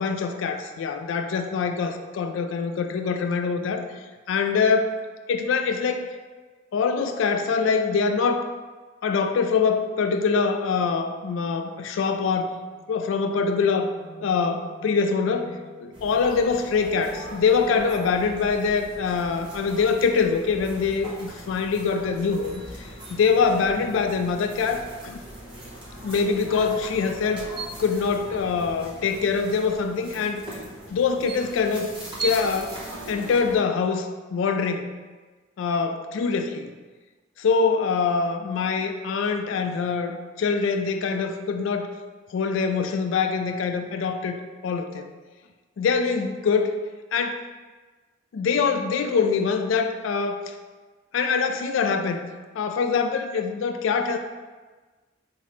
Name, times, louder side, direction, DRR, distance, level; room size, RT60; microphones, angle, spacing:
voice 1, 0.0-3.9 4.3-4.9 5.3-6.1 6.7-8.5 9.0-12.6 12.9-13.9 14.2-25.2 26.0-27.4 27.8-30.4 30.9-31.9 32.2-32.8 33.1-34.9 35.6-36.7 37.4-41.9 42.3-44.4 44.6-45.1 45.8-46.7 47.1-47.4 48.3-50.5 51.1-52.2 52.5-54.2, left 5 dB, 75° left, 7 dB, 0.3 m, -24 dB
sound 1, 12.5-17.8, left 1 dB, 30° left, 0.9 m, -46 dB
sound 2, 15.9-33.6, right 2 dB, 25° right, 0.9 m, -39 dB
5.5 x 2.0 x 3.1 m, 1.3 s
head